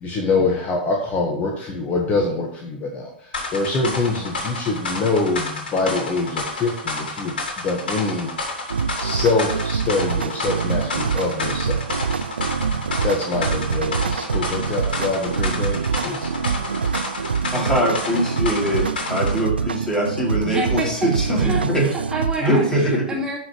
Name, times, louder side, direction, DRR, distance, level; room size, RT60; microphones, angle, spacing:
voice 1, 0.0-7.4 7.6-8.3 9.0-11.8 13.0-16.3, left 3 dB, 30° left, 1 dB, 1.5 m, -24 dB
sound 1, 3.3-19.5, left 2 dB, 70° left, 3.1 m, -30 dB
sound 2, 8.7-22.5, right 6 dB, 80° right, 0.5 m, -25 dB
voice 2, 17.5-21.9 22.4-23.0, equal, 15° left, -3 dB, 3.7 m, -22 dB
voice 3, 20.4-20.9 21.4-23.4, right 2 dB, 15° right, -2 dB, 2.5 m, -28 dB
13.5 x 5.3 x 3.3 m, 0.62 s
figure-of-eight pair, 100°, 5 cm